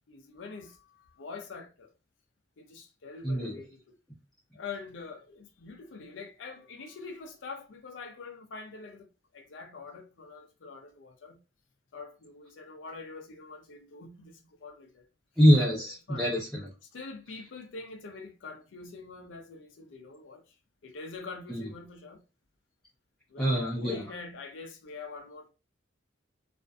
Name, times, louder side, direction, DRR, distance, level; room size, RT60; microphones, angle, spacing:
voice 1, 0.1-1.9 2.6-4.0 4.5-9.1 9.3-11.4 11.9-15.1 16.1-16.3 16.9-20.4 20.8-22.2 23.3-25.5, left 4 dB, 75° left, 0.5 m, -44 dB
voice 2, 3.2-3.6 15.4-16.7 21.5-21.7 23.4-24.0, equal, 5° left, 0.5 m, -24 dB
2.5 x 2.4 x 2.2 m
head